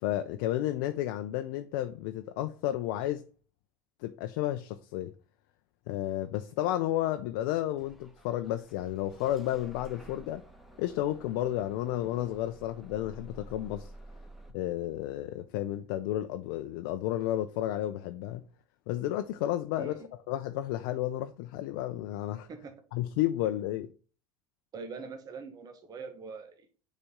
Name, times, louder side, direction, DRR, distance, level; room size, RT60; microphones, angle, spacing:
voice 1, 0.0-3.3 4.0-5.1 5.9-10.4 10.8-13.9 14.5-18.4 18.9-22.5 22.9-23.9, left 13 dB, 70° left, 0.5 m, -32 dB
Bus / Engine starting, 7.8-14.5, right 1 dB, ahead, 1.3 m, -51 dB
voice 2, 24.7-26.7, right 5 dB, 35° right, 1.2 m, -43 dB
6.8 x 4.2 x 3.6 m
hypercardioid pair, 90°, 11 cm